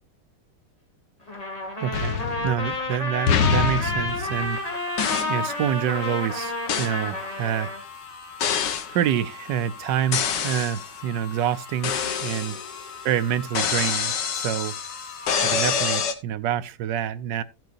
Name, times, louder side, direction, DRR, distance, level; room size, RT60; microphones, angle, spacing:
Trumpet, 1.3-7.8, left 2 dB, 20° left, 2.4 m, -30 dB
voice 1, 1.8-2.2 2.4-4.6 5.3-7.7 8.9-12.6 13.0-14.8 15.4-17.4, right 10 dB, 80° right, 1.4 m, -27 dB
sound 1, 1.9-2.9 3.3-4.6 5.0-5.4 6.7-7.0 8.4-8.9 10.1-10.9 11.8-12.9 13.5-16.1, left 7 dB, 80° left, 1.8 m, -26 dB
sound 2, 4.1-15.4, left 5 dB, 65° left, 1.8 m, -42 dB
16.0 x 7.7 x 2.5 m
omnidirectional pair, 1.9 m